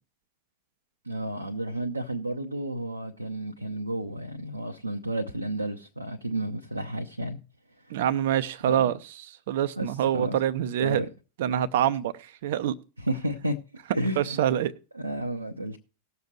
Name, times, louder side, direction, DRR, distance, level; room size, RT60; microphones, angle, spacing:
voice 1, 1.0-7.4 7.9-8.0 8.7-8.9 9.8-10.4 10.8-11.1 13.0-13.6 13.9-14.5 14.9-15.8, right 1 dB, 85° right, 2 dB, 0.8 m, -32 dB
voice 2, 7.9-9.0 9.5-11.0 11.4-12.1 12.4-12.7 14.2-14.7, right 10 dB, 55° right, 15 dB, 0.7 m, -25 dB
19.0 x 6.9 x 3.1 m, 0.34 s
figure-of-eight pair, 90°, 0 cm